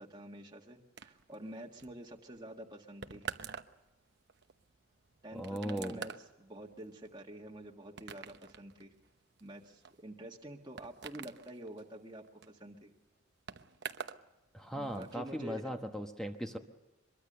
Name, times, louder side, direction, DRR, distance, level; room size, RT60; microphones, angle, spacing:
voice 1, 0.0-3.4 5.2-6.1 6.4-9.0 9.4-12.9 14.7-15.6, right 1 dB, 20° right, 0 dB, 1.7 m, -48 dB
sound 1, 1.0-14.3 14.5-15.1, right 6 dB, 55° right, 1.0 m, -48 dB
voice 2, 5.3-6.0 14.5-16.6, equal, 5° left, 4 dB, 1.2 m, -38 dB
24.0 x 22.5 x 6.8 m, 1.0 s
head